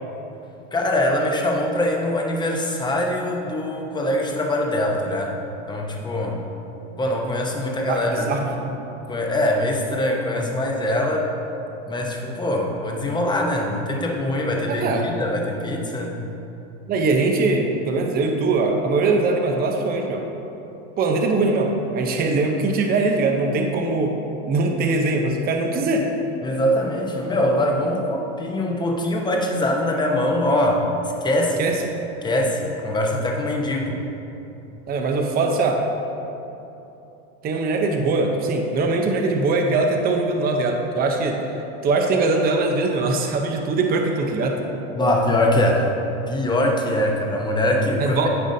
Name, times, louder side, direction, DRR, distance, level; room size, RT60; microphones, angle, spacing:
voice 1, 0.7-5.3 5.7-6.4 7.0-8.3 9.1-11.3 11.9-16.2 26.4-30.9 31.2-31.8 32.2-34.0 45.0-45.8 46.3-48.3, left 1 dB, 15° left, 0 dB, 0.9 m, -23 dB
voice 2, 7.8-8.7 14.7-15.1 16.9-20.2 21.0-24.2 24.5-26.1 31.6-31.7 34.9-35.8 37.4-41.4 41.8-44.6 48.0-48.3, right 3 dB, 25° right, 2 dB, 0.7 m, -21 dB
13.0 x 4.9 x 2.7 m, 3.0 s
supercardioid pair, 125°, 34 cm